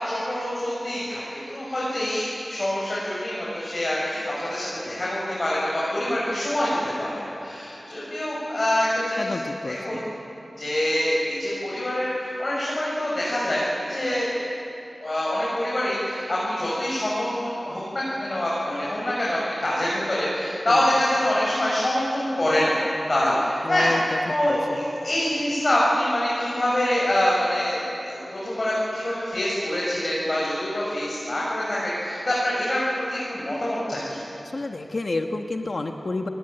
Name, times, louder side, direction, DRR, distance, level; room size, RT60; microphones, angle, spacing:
voice 1, 0.0-6.7 7.0-9.3 9.7-10.0 10.6-14.3 15.0-22.8 23.1-23.9 24.3-27.8 28.0-34.2, left 1 dB, 45° left, -7 dB, 7.5 m, -25 dB
voice 2, 9.1-10.0 20.7-20.9 23.6-24.8 34.4-36.3, left 2 dB, 60° left, 4 dB, 1.3 m, -30 dB
29.5 x 19.0 x 9.0 m, 2.9 s
wide cardioid pair, 60°, 0 cm